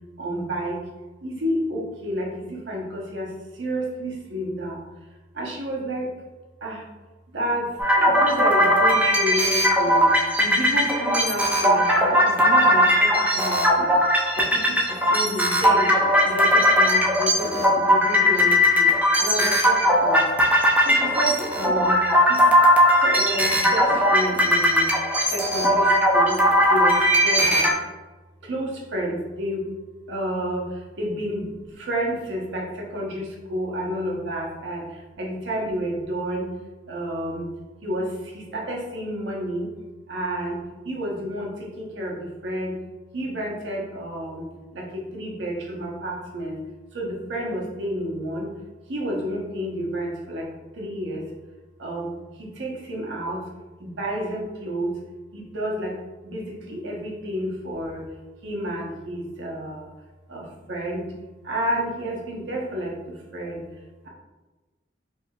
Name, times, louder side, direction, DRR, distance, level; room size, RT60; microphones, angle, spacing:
voice 1, 0.2-0.8 1.2-3.3 3.6-4.8 5.4-6.1 6.6-6.8 7.3-7.7 7.9-10.1 10.4-13.9 14.5-14.8 15.1-15.9 16.2-18.9 19.2-20.2 20.9-22.0 22.3-22.4 23.0-24.9 25.3-26.4 26.7-27.0 27.2-27.7 28.5-29.6 30.1-30.7 31.0-31.4 31.8-34.8 35.2-36.5 36.9-37.5 37.8-38.1 38.3-39.7 40.1-40.6 40.9-41.5 41.8-42.7 43.1-44.4 44.7-46.6 46.9-48.5 48.9-50.5 50.8-51.2 51.8-52.1 52.4-53.4 53.8-54.9 55.3-55.9 56.2-58.0 58.4-59.9 60.3-61.1 61.5-62.9 63.3-63.6, equal, 70° right, -2 dB, 0.9 m, -30 dB
sound 1, 7.8-27.7, equal, 10° right, 0.5 m, -19 dB
4.4 x 2.7 x 2.3 m, 1.2 s
head